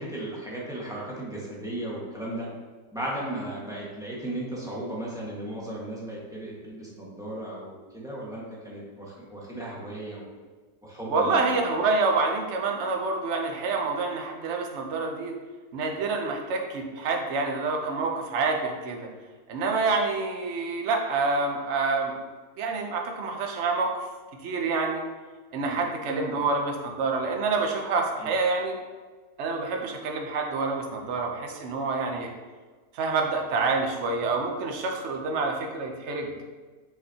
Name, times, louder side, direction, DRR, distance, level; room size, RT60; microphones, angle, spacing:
voice 1, 0.0-2.5 2.9-10.3 10.8-11.6 25.6-25.8 26.1-26.4 28.2-28.3, right 1 dB, ahead, -6 dB, 1.4 m, -36 dB
voice 2, 11.1-15.3 15.7-19.1 19.5-22.2 22.6-24.1 24.4-25.0 25.5-28.8 29.4-32.3 32.9-36.3, right 3 dB, 55° right, 2 dB, 1.0 m, -27 dB
6.3 x 5.4 x 2.9 m, 1.4 s
omnidirectional pair, 1.7 m